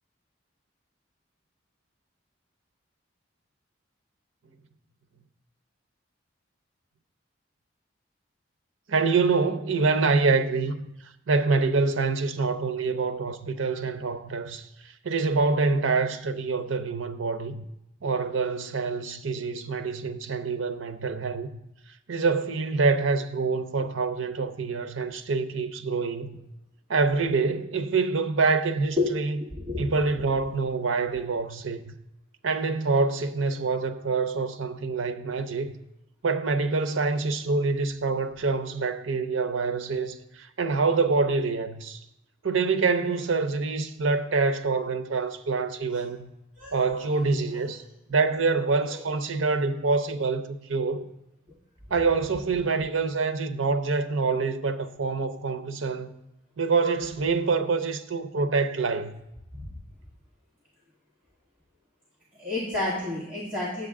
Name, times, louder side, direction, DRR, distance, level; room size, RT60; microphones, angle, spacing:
voice 1, 8.9-10.8 11.3-17.6 18.0-21.6 22.1-26.4 26.9-29.4 29.8-31.9 32.4-35.7 36.2-42.0 42.4-46.3 46.7-47.8 48.1-51.0 51.9-56.1 56.6-59.2, right 4 dB, 80° right, 0.6 m, -26 dB
voice 2, 29.5-29.9 45.9-46.0 46.6-47.0 47.5-47.6 48.9-49.0 59.5-59.8 62.4-63.9, left 2 dB, 5° right, 1.9 m, -30 dB
9.6 x 8.0 x 3.6 m
head